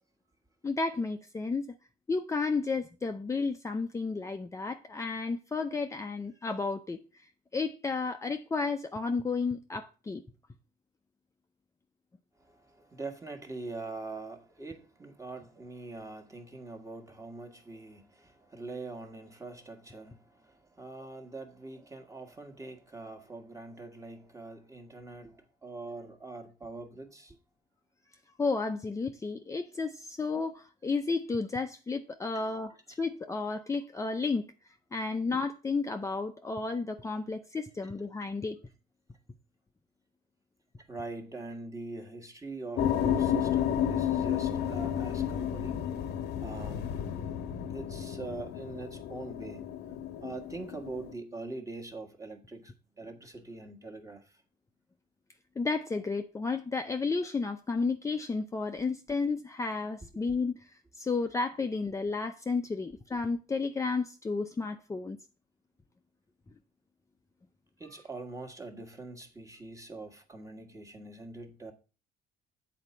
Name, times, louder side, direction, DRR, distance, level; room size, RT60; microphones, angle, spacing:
voice 1, 0.6-1.6 2.1-7.0 7.5-10.2 28.4-34.4 34.9-38.6 55.6-60.6 61.0-65.2, left 4 dB, 20° left, 0.6 m, -32 dB
voice 2, 12.4-27.4 32.9-33.0 40.8-45.9 46.4-47.0 47.7-49.7 50.2-54.3 62.8-62.9 67.8-71.7, right 3 dB, 20° right, 1.5 m, -43 dB
sound 1, 42.8-51.1, left 9 dB, 75° left, 0.9 m, -32 dB
8.1 x 4.3 x 6.9 m
cardioid pair, 110°, 17 cm